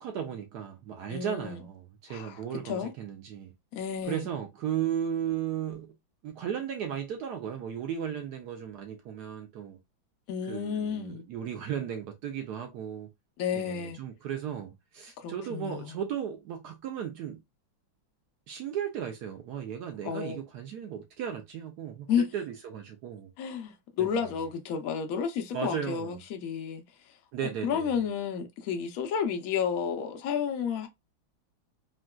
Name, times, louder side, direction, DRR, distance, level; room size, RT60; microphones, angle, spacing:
voice 1, 0.0-3.5 4.1-5.9 6.2-9.8 10.5-13.1 13.5-17.4 18.5-23.3 24.0-24.2 25.5-26.2 27.3-28.0, right 9 dB, 75° right, 0.9 m, -35 dB
voice 2, 1.1-1.6 2.1-2.9 3.7-4.3 10.3-11.2 13.4-14.0 15.2-15.9 20.0-20.4 22.1-22.3 23.4-26.8 27.4-30.9, left 7 dB, 75° left, 0.8 m, -31 dB
3.8 x 2.2 x 2.2 m
omnidirectional pair, 2.2 m